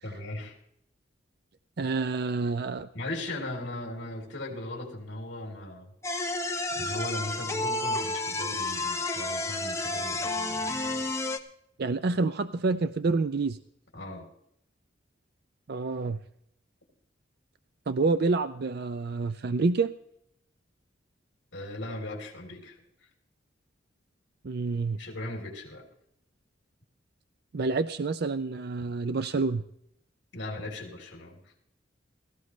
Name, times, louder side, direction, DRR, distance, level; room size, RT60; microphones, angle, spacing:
voice 1, 0.0-0.5 2.9-5.9 6.7-11.0 13.9-14.3 21.5-22.8 24.9-25.8 30.3-31.4, left 1 dB, 65° left, 0 dB, 3.2 m, -38 dB
voice 2, 1.8-2.9 11.8-13.6 15.7-16.2 17.9-19.9 24.4-25.0 27.5-29.6, right 3 dB, 55° right, 12 dB, 0.5 m, -28 dB
sound 1, 6.0-11.4, left 2 dB, 15° left, 1.0 m, -31 dB
17.5 x 15.0 x 3.2 m, 0.73 s
head